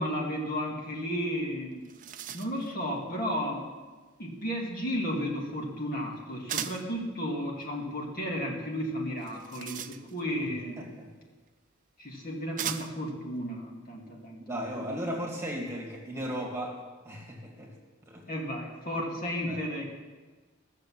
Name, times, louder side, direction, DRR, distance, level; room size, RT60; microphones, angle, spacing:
voice 1, 0.0-1.8 2.3-3.7 4.2-10.8 12.0-14.4 14.9-15.0 18.3-19.8, equal, 45° left, -1 dB, 2.1 m, -33 dB
sound 1, 1.4-1.5 1.7-2.7 6.5-6.9 9.2-10.4 11.5-11.6 12.6-13.1, right 9 dB, 40° right, 0.5 m, -38 dB
voice 2, 10.8-11.1 14.5-17.7 18.1-18.2 19.5-19.6, equal, 15° right, -1 dB, 2.2 m, -36 dB
15.0 x 6.6 x 7.6 m, 1.3 s
head